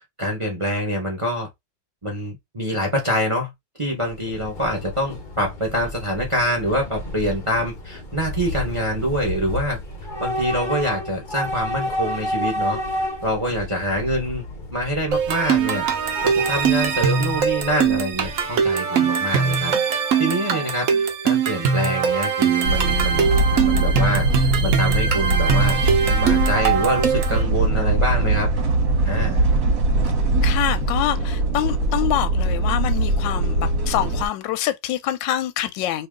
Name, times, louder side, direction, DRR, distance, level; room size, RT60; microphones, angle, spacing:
voice 1, 0.2-1.5 2.0-3.5 3.8-9.8 10.2-12.8 13.2-14.4 14.7-15.8 16.2-23.3 23.6-25.8 26.0-28.5 29.0-29.5, equal, 30° right, 0.5 m, -25 dB
Train / Subway metro underground, 3.9-18.7, left 1 dB, 55° left, 0.5 m, -31 dB
sound 1, 15.1-27.4, right 6 dB, 75° right, 0.7 m, -21 dB
sound 2, 22.6-34.3, right 2 dB, 50° right, 1.1 m, -21 dB
voice 2, 30.4-36.1, left 12 dB, 75° left, 1.2 m, -25 dB
3.0 x 2.8 x 3.6 m
omnidirectional pair, 2.3 m